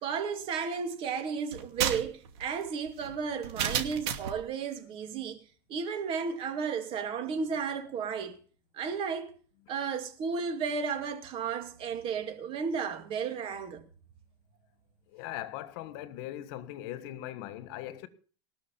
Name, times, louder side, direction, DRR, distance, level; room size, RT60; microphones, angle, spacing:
voice 1, 0.0-5.4 5.7-8.4 8.7-9.3 9.7-13.8, right 6 dB, 35° right, 2.7 m, -33 dB
sound 1, 1.5-4.4, right 9 dB, 60° right, 2.6 m, -33 dB
voice 2, 15.1-18.1, left 13 dB, 55° left, 1.6 m, -40 dB
19.0 x 6.3 x 8.6 m
supercardioid pair, 160°, 16 cm